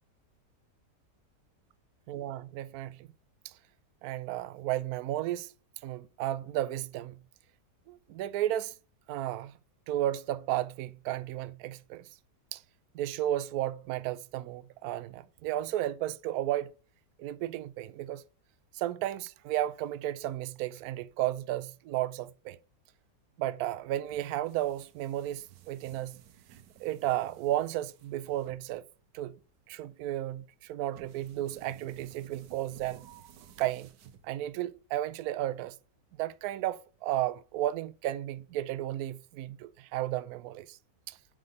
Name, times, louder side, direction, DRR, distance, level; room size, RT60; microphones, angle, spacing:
voice 1, 2.1-3.1 3.4-3.5 4.0-5.5 5.8-7.2 7.9-8.7 9.1-9.5 9.9-12.1 12.5-12.6 12.9-16.7 17.2-18.2 18.7-22.6 23.4-26.2 26.8-28.8 29.1-29.3 29.7-33.0 33.6-33.9 34.2-35.8 36.2-40.8 41.1-41.2, right 13 dB, 70° right, 1.0 m, -33 dB
sound 1, 24.1-34.7, right 8 dB, 85° right, 1.4 m, -56 dB
9.5 x 3.8 x 5.1 m
omnidirectional pair, 1.8 m